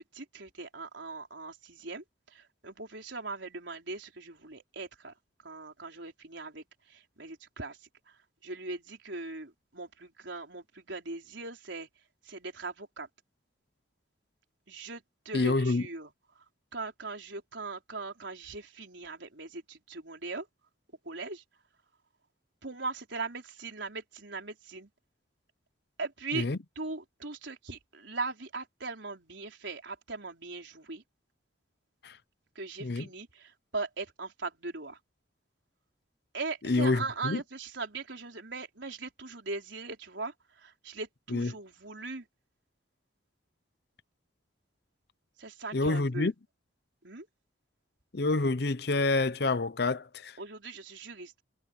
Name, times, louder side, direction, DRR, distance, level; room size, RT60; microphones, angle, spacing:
voice 1, 0.0-5.1 5.4-11.9 12.2-13.1 14.7-16.4 16.7-20.5 21.0-21.4 22.6-24.9 26.0-26.5 26.8-31.0 32.5-35.0 36.3-42.3 45.4-46.3 47.0-47.3 50.4-51.4, right 3 dB, 75° right, 4.3 m, -40 dB
voice 2, 15.3-15.8 26.3-26.6 32.0-32.2 32.8-33.1 36.7-37.4 41.3-41.5 45.7-46.3 48.1-50.4, left 3 dB, 60° left, 0.7 m, -27 dB
head